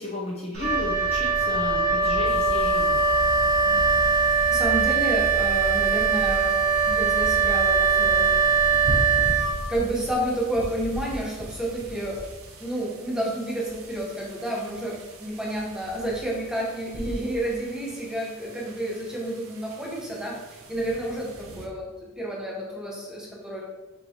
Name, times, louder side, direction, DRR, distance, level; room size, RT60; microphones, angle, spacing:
voice 1, 0.0-3.0, left 2 dB, 30° left, -3 dB, 0.6 m, -34 dB
Wind instrument woodwind instrument, 0.5-10.0, right 5 dB, 45° right, 1.2 m, -22 dB
sound 1, 2.2-21.7, right 1 dB, 70° right, 0.7 m, -39 dB
voice 2, 4.5-6.6 6.8-8.3 9.7-12.2 12.6-20.4 20.7-23.6, right 1 dB, 5° right, -4 dB, 0.9 m, -30 dB
5.6 x 3.0 x 2.8 m, 1.1 s
head